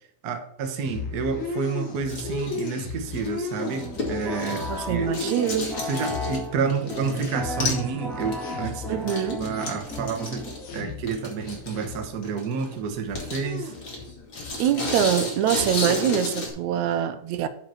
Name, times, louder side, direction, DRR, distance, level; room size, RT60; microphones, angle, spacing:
voice 1, 0.2-5.1 5.8-13.7, right 5 dB, 55° right, 1.0 m, -30 dB
sound 1, 0.8-6.5 6.9-11.1 11.4-12.1 12.6-14.6 14.8-15.2 15.5-16.9, left 5 dB, 80° left, 2.9 m, -36 dB
sound 2, 1.9-4.9 5.1-7.3 7.6-7.9 8.2-16.5, left 3 dB, 45° left, 2.5 m, -33 dB
sound 3, 3.5-10.9, left 1 dB, ahead, 1.1 m, -35 dB
voice 2, 4.7-5.7 8.9-9.4 14.6-17.5, right 10 dB, 85° right, 2.0 m, -24 dB
7.6 x 5.2 x 5.7 m
omnidirectional pair, 3.3 m